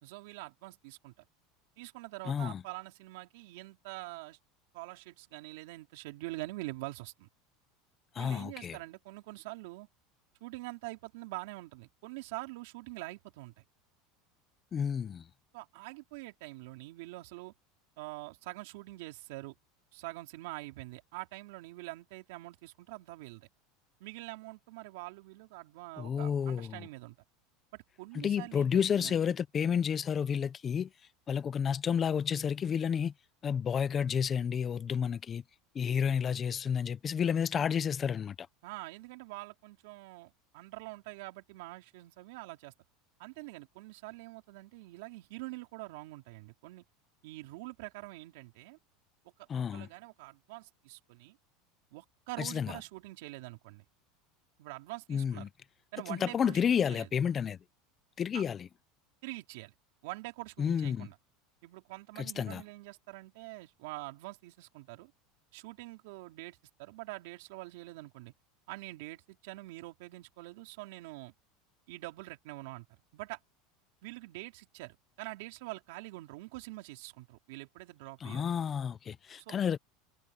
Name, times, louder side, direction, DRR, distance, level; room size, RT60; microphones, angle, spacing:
voice 1, 0.0-1.2 1.8-4.4 4.7-7.3 8.2-9.9 10.4-13.5 15.5-17.5 18.0-19.5 19.9-23.5 24.0-27.2 27.7-29.4 38.6-42.7 43.2-46.8 47.2-48.8 49.7-51.4 51.9-53.9 54.6-55.5 55.9-57.1 58.3-58.4 59.2-59.7 60.0-61.1 61.6-65.1 65.5-68.3 68.7-71.3 71.9-72.9 73.1-73.4 74.0-78.5 79.5-79.6, right 21 dB, 70° right, 4.2 m, -45 dB
voice 2, 2.2-2.6 8.1-8.8 14.7-15.2 26.0-26.9 28.1-30.9 31.3-33.1 33.4-35.4 35.7-38.5 49.5-49.9 52.4-52.8 55.1-55.5 56.1-57.6 58.2-58.7 60.6-61.1 62.4-62.6 78.2-79.8, left 7 dB, 25° left, 0.8 m, -31 dB
supercardioid pair, 150°, 0 cm